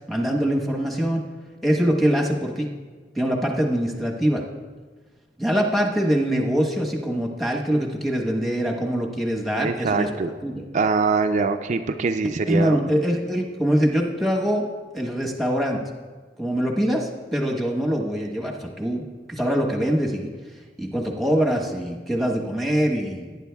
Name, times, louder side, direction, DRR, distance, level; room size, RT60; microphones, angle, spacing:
voice 1, 0.1-1.2 1.6-2.7 3.1-4.4 5.4-10.1 10.4-10.5 12.5-14.6 14.9-15.8 16.4-19.0 19.3-20.3 20.8-23.3, equal, ahead, -1 dB, 1.1 m, -23 dB
voice 2, 9.6-10.3 10.7-12.8, right 4 dB, 40° right, 7 dB, 0.4 m, -23 dB
18.0 x 9.7 x 2.3 m, 1.4 s
head